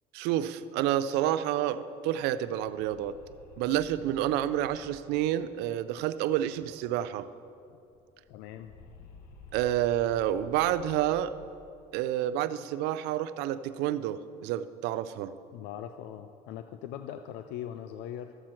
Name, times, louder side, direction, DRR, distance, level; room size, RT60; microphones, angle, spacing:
voice 1, 0.1-3.2 3.6-7.3 9.5-11.3 11.9-15.3, right 12 dB, 85° right, 15 dB, 0.4 m, -29 dB
sound 1, 2.0-7.2 7.5-7.6 7.8-12.2, left 4 dB, 65° left, 1.0 m, -53 dB
voice 2, 8.3-8.7 15.5-18.4, left 10 dB, 90° left, 9 dB, 0.4 m, -41 dB
13.5 x 7.5 x 4.4 m, 2.6 s
cardioid pair, 95°, 17 cm